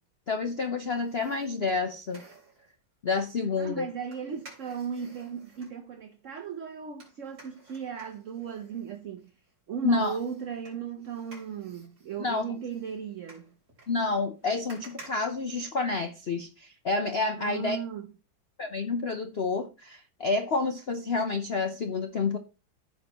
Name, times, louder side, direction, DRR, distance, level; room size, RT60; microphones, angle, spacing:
voice 1, 0.3-2.2 3.0-3.9 9.8-10.2 12.2-12.5 13.9-17.8 18.6-22.4, left 4 dB, 65° left, 0.6 m, -29 dB
sound 1, 0.9-2.7 4.1-5.8 7.0-9.5 10.0-16.2 16.6-16.7, right 2 dB, 40° right, 3.9 m, -54 dB
voice 2, 3.6-9.3 9.7-13.5 17.4-18.1, right 7 dB, 60° right, 0.8 m, -36 dB
14.5 x 5.7 x 3.0 m
omnidirectional pair, 2.1 m